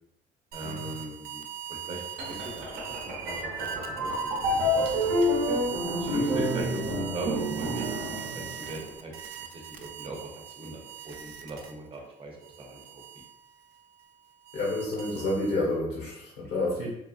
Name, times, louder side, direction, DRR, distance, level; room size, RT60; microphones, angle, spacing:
voice 1, 0.5-1.4 1.7-4.8 6.0-6.8 7.1-9.1 9.5-10.2 10.6-13.0, right 1 dB, 30° right, 0 dB, 0.8 m, -39 dB
sound 1, 0.5-12.0 12.4-15.8, right 9 dB, 65° right, 0.4 m, -41 dB
sound 2, 2.2-8.9, equal, 85° right, 0.7 m, -29 dB
voice 2, 14.5-16.9, left 2 dB, 70° left, -4 dB, 1.4 m, -29 dB
3.2 x 2.4 x 2.5 m, 0.83 s
cardioid pair, 110°, 17 cm